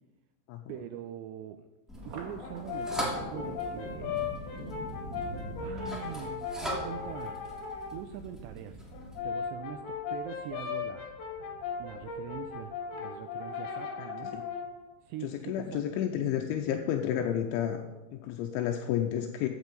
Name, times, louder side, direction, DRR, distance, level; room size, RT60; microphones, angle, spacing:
voice 1, 0.7-1.7 2.1-4.1 5.6-7.4 7.9-8.8 9.2-11.1 11.8-14.3 15.0-15.8, right 11 dB, 85° right, 8 dB, 2.5 m, -43 dB
sound 1, 1.9-9.2, equal, ahead, 0.9 m, -41 dB
Thunder, 2.0-14.6 15.0-15.8 16.2-17.0, right 2 dB, 60° right, 4.1 m, -46 dB
Brass instrument, 2.4-8.0 8.9-14.8, left 6 dB, 60° left, 3.4 m, -37 dB
voice 2, 15.2-17.8 18.1-19.5, left 10 dB, 85° left, 3 dB, 3.0 m, -31 dB
15.0 x 8.2 x 5.3 m, 1.1 s
omnidirectional pair, 5.6 m